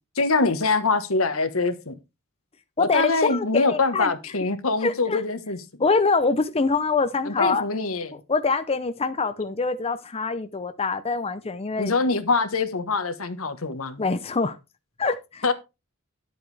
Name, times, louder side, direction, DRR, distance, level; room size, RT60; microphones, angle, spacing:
voice 1, 0.2-1.9 2.8-5.6 7.3-8.2 11.8-14.0 15.4-15.5, left 3 dB, 80° left, 1.3 m, -24 dB
voice 2, 2.8-4.1 4.8-5.2 5.8-7.7 8.3-11.9 14.0-14.6 15.0-15.4, left 4 dB, 30° left, 0.7 m, -24 dB
11.5 x 8.0 x 3.4 m
head